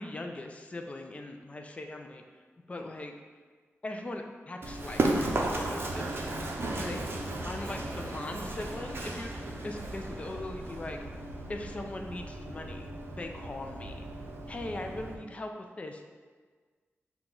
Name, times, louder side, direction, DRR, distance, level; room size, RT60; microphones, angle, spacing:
voice 1, 0.0-2.2 2.7-3.1 3.8-6.3 6.8-7.0 7.4-11.0 11.5-12.9 13.2-14.0 14.5-15.5 15.8-16.2, left 2 dB, 25° left, 4 dB, 0.4 m, -40 dB
Run, 4.6-15.1, right 2 dB, 50° right, 0.5 m, -35 dB
5.8 x 2.3 x 3.7 m, 1.5 s
wide cardioid pair, 125°, 5 cm